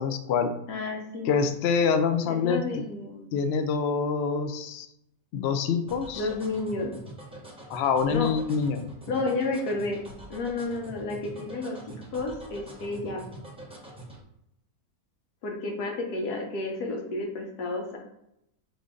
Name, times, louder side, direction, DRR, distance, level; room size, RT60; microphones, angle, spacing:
voice 1, 0.0-0.5 1.3-2.8 3.3-4.9 5.3-6.3 7.7-8.9, left 5 dB, 70° left, 8 dB, 0.6 m, -26 dB
voice 2, 0.7-1.3 2.3-3.4 6.2-6.9 8.1-8.3 9.1-10.0 10.3-13.2 15.4-18.0, left 3 dB, 90° left, 1 dB, 1.4 m, -31 dB
sound 1, 5.9-14.2, right 1 dB, 5° right, 0.5 m, -44 dB
5.2 x 2.6 x 3.7 m, 0.81 s
omnidirectional pair, 1.6 m